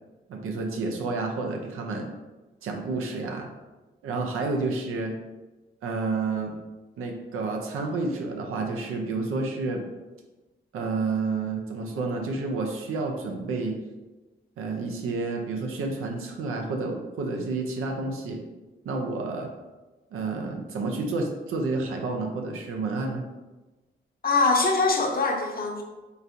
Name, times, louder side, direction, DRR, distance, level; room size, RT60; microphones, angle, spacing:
voice 1, 0.3-2.1 2.6-3.5 4.0-5.1 5.8-6.5 7.0-9.8 10.7-13.8 14.6-18.4 18.8-19.5 20.1-23.2, right 3 dB, 85° right, 2 dB, 0.6 m, -30 dB
voice 2, 24.2-25.8, left 3 dB, 45° left, 1 dB, 0.9 m, -23 dB
4.1 x 3.3 x 2.6 m, 1.1 s
cardioid pair, 55°, 21 cm